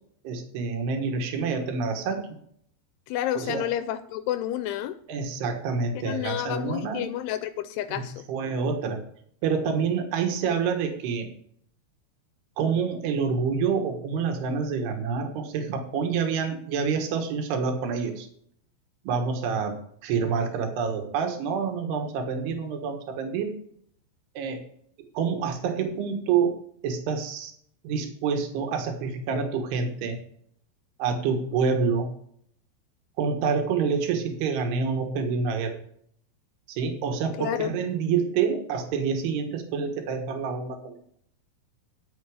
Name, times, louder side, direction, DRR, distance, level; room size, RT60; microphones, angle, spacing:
voice 1, 0.3-2.2 3.4-3.7 5.1-7.1 7.9-8.0 8.3-9.0 9.4-11.3 12.6-18.3 19.1-19.8 20.0-23.6 24.4-24.6 25.2-26.6 26.8-27.5 27.8-30.2 31.0-32.1 33.2-35.8 36.7-40.9, right 5 dB, 75° right, 5 dB, 3.5 m, -27 dB
voice 2, 3.1-4.9 6.0-8.2 37.4-37.8, left 12 dB, 80° left, 11 dB, 2.6 m, -30 dB
11.0 x 8.0 x 4.9 m, 0.64 s
omnidirectional pair, 4.7 m